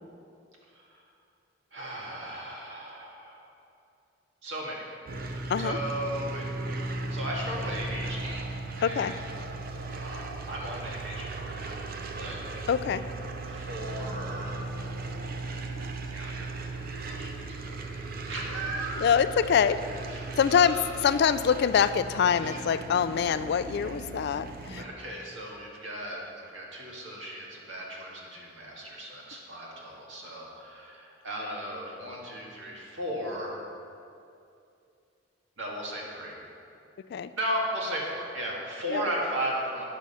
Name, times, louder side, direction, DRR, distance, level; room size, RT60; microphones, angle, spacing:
voice 1, 1.7-3.5 4.4-4.9 5.6-8.4 8.7-9.1 9.9-11.8 12.1-12.4 13.5-14.7 16.1-19.2 20.1-20.9 22.4-22.6 24.7-33.6 35.6-36.4 37.4-39.8, right 1 dB, 80° right, -3 dB, 2.0 m, -36 dB
sound 1, 5.1-24.8, right 2 dB, 50° right, 0.6 m, -37 dB
voice 2, 8.8-9.1 12.7-13.0 19.0-19.8 20.4-24.8 37.1-37.3 38.9-39.1, left 7 dB, 60° left, 13 dB, 0.3 m, -25 dB
9.6 x 6.2 x 5.5 m, 2.6 s
head